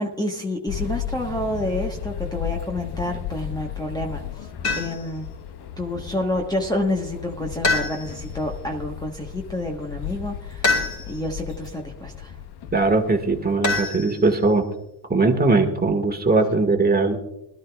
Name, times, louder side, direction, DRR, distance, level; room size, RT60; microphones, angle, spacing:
voice 1, 0.0-4.5 4.8-5.3 5.8-12.4, left 1 dB, 10° left, 1 dB, 1.2 m, -29 dB
sound 1, 0.7-13.6, left 10 dB, 55° left, 1.0 m, -35 dB
sound 2, 4.6-5.2 7.6-8.4 10.6-11.3 13.6-14.5, left 3 dB, 35° left, 3.7 m, -25 dB
voice 2, 12.7-14.7 15.1-17.2, right 3 dB, 20° right, 5 dB, 1.7 m, -20 dB
20.5 x 12.5 x 2.4 m, 0.87 s
supercardioid pair, 90°, 48 cm